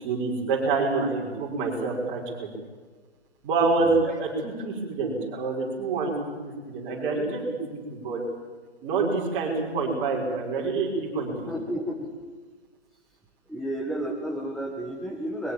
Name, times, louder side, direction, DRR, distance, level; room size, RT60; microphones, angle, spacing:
voice 1, 0.0-2.5 3.4-8.2 8.8-11.5, right 3 dB, 25° right, -1 dB, 6.1 m, -27 dB
voice 2, 3.8-4.2 11.5-12.1 13.5-15.5, right 1 dB, ahead, -1 dB, 1.5 m, -32 dB
22.5 x 22.5 x 7.4 m, 1.4 s
figure-of-eight pair, 135°, 34 cm